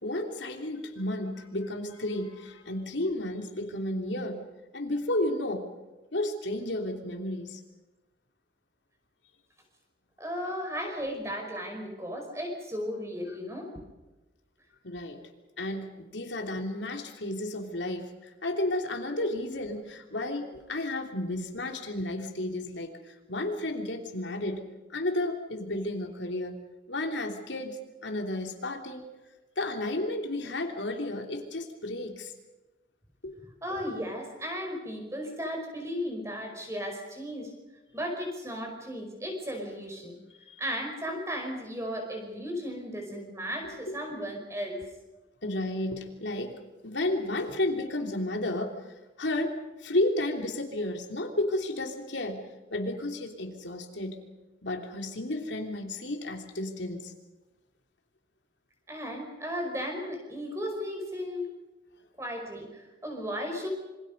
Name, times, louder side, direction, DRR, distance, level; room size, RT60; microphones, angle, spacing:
voice 1, 0.0-4.4 4.7-5.7 6.1-7.6 14.8-15.2 15.6-24.6 24.9-26.6 26.9-29.1 29.6-32.3 33.2-33.3 40.5-40.6 43.9-44.0 45.4-48.7 49.2-52.4 52.7-54.2 54.6-57.1, left 1 dB, 85° left, 4 dB, 3.3 m, -32 dB
voice 2, 10.2-13.7 33.6-37.5 37.9-40.2 40.6-44.9 58.9-61.5 62.2-63.7, equal, 15° right, 2 dB, 5.4 m, -35 dB
27.0 x 25.0 x 5.4 m, 1.1 s
head